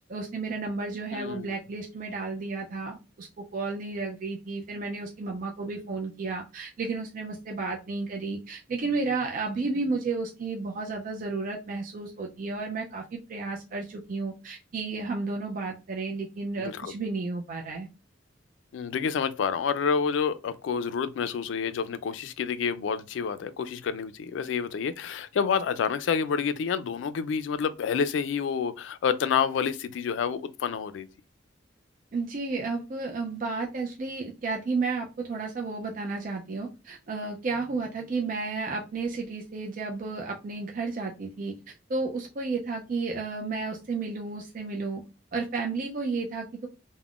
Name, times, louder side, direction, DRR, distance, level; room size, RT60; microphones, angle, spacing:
voice 1, 0.1-17.9 32.1-45.0 45.3-46.7, right 3 dB, 45° right, 0.4 m, -32 dB
voice 2, 1.1-1.6 16.6-16.9 18.7-31.1, left 6 dB, 75° left, 0.3 m, -28 dB
2.4 x 2.1 x 3.5 m
head